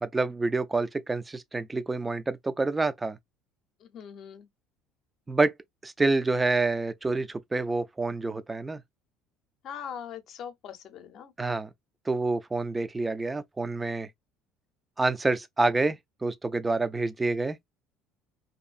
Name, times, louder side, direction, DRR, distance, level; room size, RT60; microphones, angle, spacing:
voice 1, 0.0-3.2 5.3-5.5 5.8-8.8 11.4-11.7 12.1-14.1 15.0-17.6, right 3 dB, 15° right, 0.3 m, -27 dB
voice 2, 3.8-4.5 9.6-11.3, left 8 dB, 50° left, 0.6 m, -41 dB
2.7 x 2.6 x 2.4 m
cardioid pair, 125°, 0 cm